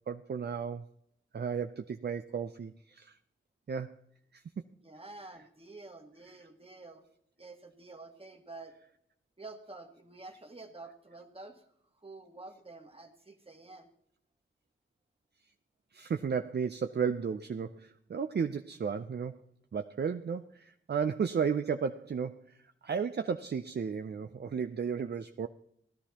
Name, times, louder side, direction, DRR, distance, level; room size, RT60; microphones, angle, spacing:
voice 1, 0.1-0.8 1.3-3.1 3.7-3.9 4.3-4.4 15.9-19.3 19.7-22.4 22.8-25.5, right 6 dB, 55° right, 0.5 m, -33 dB
voice 2, 4.8-7.1 7.4-8.8 9.4-11.7 11.9-13.9, right 3 dB, 25° right, 1.8 m, -49 dB
16.5 x 11.0 x 2.9 m
cardioid pair, 45°, 21 cm